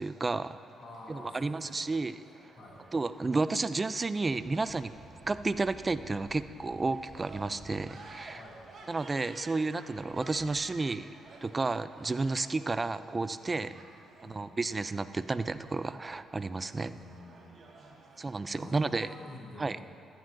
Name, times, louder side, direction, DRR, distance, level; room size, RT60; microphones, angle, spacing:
voice 1, 0.0-0.6 1.1-2.2 2.9-4.9 5.3-8.4 8.9-11.1 11.4-13.7 14.2-16.9 18.2-19.1 19.6-19.8, right 3 dB, 25° right, 13 dB, 0.3 m, -31 dB
sound 1, 0.5-19.2, right 3 dB, 55° right, 1.7 m, -53 dB
voice 2, 0.8-1.9 2.5-2.9 8.3-8.6 13.5-13.7 14.2-14.4 16.7-19.8, left 1 dB, 55° left, -4 dB, 2.2 m, -49 dB
14.5 x 11.0 x 2.6 m, 2.3 s
cardioid pair, 90°, 0 cm